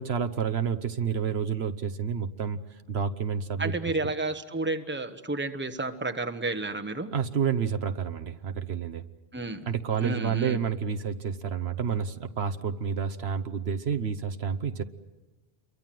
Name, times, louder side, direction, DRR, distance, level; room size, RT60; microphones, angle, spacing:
voice 1, 0.0-2.6 2.9-3.7 7.1-9.0 9.7-14.8, right 7 dB, 70° right, 8 dB, 1.3 m, -29 dB
voice 2, 3.6-7.1 9.3-9.7 10.0-10.6, right 2 dB, 10° right, 7 dB, 1.2 m, -31 dB
28.5 x 23.5 x 7.7 m, 1.2 s
omnidirectional pair, 1.1 m